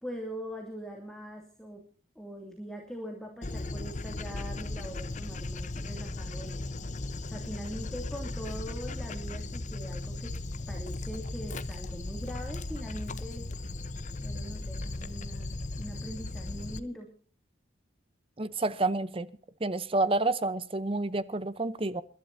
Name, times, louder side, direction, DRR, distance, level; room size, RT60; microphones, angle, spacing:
voice 1, 0.0-1.8 2.2-6.7 7.3-10.4 10.7-13.5 14.2-17.1, equal, 5° left, 2.4 m, -42 dB
Dog, 3.4-16.8, left 2 dB, 40° left, 0.8 m, -37 dB
voice 2, 18.4-19.3 19.6-22.0, right 2 dB, 30° right, 0.8 m, -29 dB
29.5 x 12.0 x 2.7 m
head